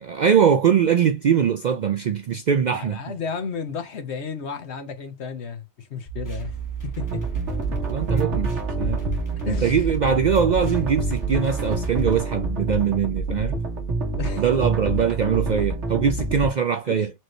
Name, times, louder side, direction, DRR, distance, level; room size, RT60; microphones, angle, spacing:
voice 1, 0.0-3.0 7.7-8.5 8.8-9.0 9.5-13.6 14.4-17.1, right 7 dB, 60° right, 0.5 m, -22 dB
voice 2, 2.7-6.5 6.8-7.2 9.5-9.8 14.2-14.4 16.9-17.1, left 6 dB, 70° left, 1.2 m, -33 dB
sound 1, 6.1-12.2, right 8 dB, 15° left, 1.3 m, -33 dB
sound 2, 7.0-16.5, right 2 dB, 80° right, 1.6 m, -27 dB
4.5 x 3.0 x 3.0 m
omnidirectional pair, 1.2 m